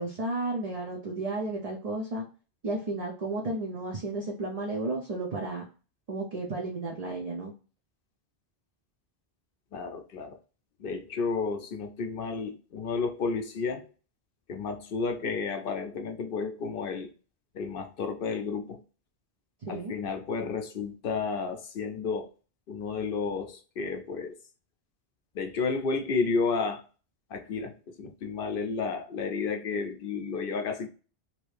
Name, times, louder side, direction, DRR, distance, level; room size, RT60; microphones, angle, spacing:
voice 1, 0.0-2.2 2.6-5.6 6.1-7.5 19.6-20.0, right 2 dB, 45° right, 0.6 m, -33 dB
voice 2, 9.7-10.4 10.8-13.8 14.5-17.1 17.5-18.8 19.7-22.3 22.7-24.4 25.3-26.8 27.3-30.9, left 4 dB, 65° left, 0.7 m, -32 dB
3.0 x 2.7 x 3.2 m
omnidirectional pair, 1.1 m